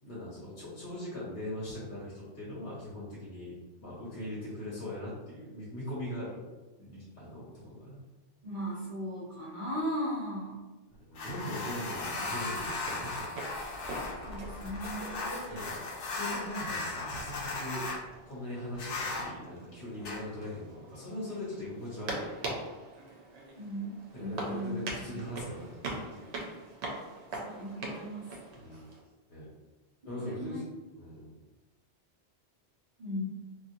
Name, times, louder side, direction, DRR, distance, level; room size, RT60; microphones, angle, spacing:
voice 1, 0.0-3.5 3.8-6.4 6.8-8.0 11.0-13.4 15.5-15.8 16.1-17.9 18.2-22.3 24.1-26.3 28.6-28.8 29.3-29.5 30.0-30.6 30.9-31.3, left 1 dB, 60° left, -7 dB, 1.0 m, -40 dB
voice 2, 8.4-10.7 14.2-15.3 23.6-25.3 27.4-28.3 30.1-30.6 33.0-33.2, equal, 45° right, -10 dB, 1.0 m, -37 dB
sound 1, 11.2-18.0 18.7-19.3 20.0-20.2, left 3 dB, 85° left, 0.9 m, -37 dB
sound 2, 11.5-29.0, right 2 dB, 70° right, 0.9 m, -43 dB
2.8 x 2.5 x 2.5 m, 1.2 s
omnidirectional pair, 1.2 m